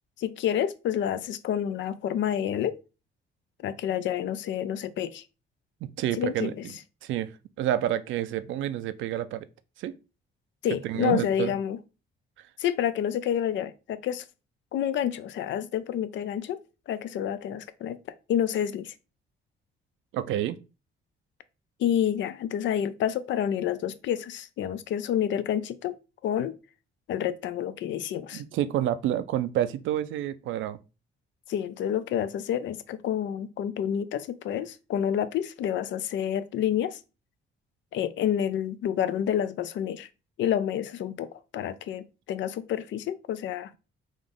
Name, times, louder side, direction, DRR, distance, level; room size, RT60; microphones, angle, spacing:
voice 1, 0.2-2.8 3.6-5.2 6.2-6.6 10.6-11.8 12.6-14.2 14.7-16.6 16.9-18.0 18.3-18.9 21.8-26.0 26.2-26.5 27.1-28.4 31.5-37.0 37.9-40.1 40.4-43.7, left 9 dB, 70° left, 0.4 m, -29 dB
voice 2, 5.8-6.7 7.0-7.3 7.6-9.5 9.8-9.9 10.8-11.5 20.1-20.6 28.3-30.8, right 12 dB, 80° right, 0.4 m, -29 dB
3.8 x 2.5 x 3.5 m
cardioid pair, 90°, 20 cm